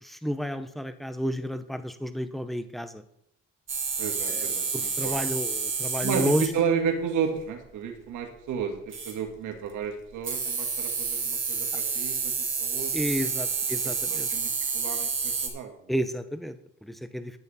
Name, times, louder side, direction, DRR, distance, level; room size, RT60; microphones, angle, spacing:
voice 1, 0.0-3.0 4.3-6.5 12.9-14.3 15.9-17.4, equal, ahead, 10 dB, 0.8 m, -31 dB
sound 1, 3.7-6.6 8.9-9.3 10.2-15.5, right 5 dB, 40° right, 2.3 m, -29 dB
voice 2, 4.0-5.2 6.0-13.1 14.1-15.8, right 6 dB, 85° right, 5 dB, 1.8 m, -32 dB
11.0 x 7.9 x 4.2 m, 0.78 s
cardioid pair, 90°, 30 cm